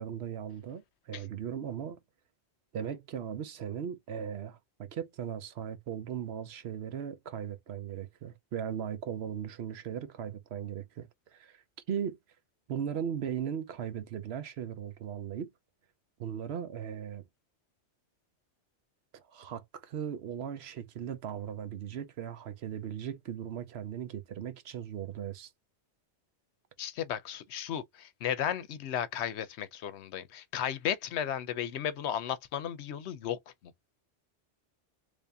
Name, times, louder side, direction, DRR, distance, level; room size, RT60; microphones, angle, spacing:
voice 1, 0.0-2.0 2.7-11.6 11.9-12.2 12.7-15.5 16.2-17.2 19.1-25.5, right 8 dB, 65° right, 0.9 m, -38 dB
voice 2, 26.8-33.4, left 9 dB, 75° left, 0.8 m, -34 dB
3.4 x 2.7 x 3.3 m
omnidirectional pair, 1.2 m